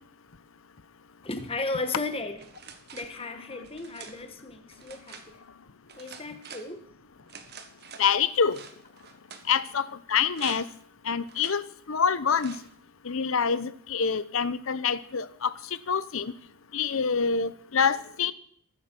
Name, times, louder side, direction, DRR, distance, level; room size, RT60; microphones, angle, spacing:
voice 1, 1.2-2.4 2.9-5.4 6.0-6.9, left 3 dB, 25° left, 8 dB, 1.3 m, -35 dB
sound 1, 2.4-3.1 3.6-4.2 4.7-5.3 5.9-6.7 7.3-8.1 8.5-9.5 10.3-10.8 11.3-11.6 12.4-12.7, right 6 dB, 45° right, 1.5 m, -46 dB
voice 2, 8.0-8.6 9.5-10.7 11.0-12.6 13.0-15.5 15.9-16.3 16.7-18.3, left 6 dB, 65° left, 16 dB, 0.7 m, -26 dB
21.5 x 7.6 x 6.0 m, 0.64 s
head